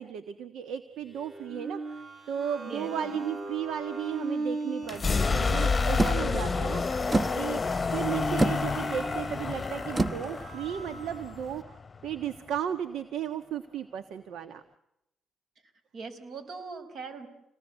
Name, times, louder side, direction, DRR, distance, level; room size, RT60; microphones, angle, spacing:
voice 1, 0.0-6.8 7.3-14.6, right 9 dB, 80° right, 10 dB, 1.4 m, -35 dB
sound 1, 1.1-11.3, right 2 dB, 40° right, 6.9 m, -39 dB
voice 2, 2.7-3.1 15.9-17.3, right 4 dB, 60° right, 8 dB, 5.3 m, -40 dB
sound 2, 4.8-12.6, left 4 dB, 30° left, 0.9 m, -29 dB
sound 3, 6.0-11.6, right 2 dB, 25° right, 1.0 m, -32 dB
27.5 x 19.5 x 8.2 m, 0.86 s
cardioid pair, 90°, 0 cm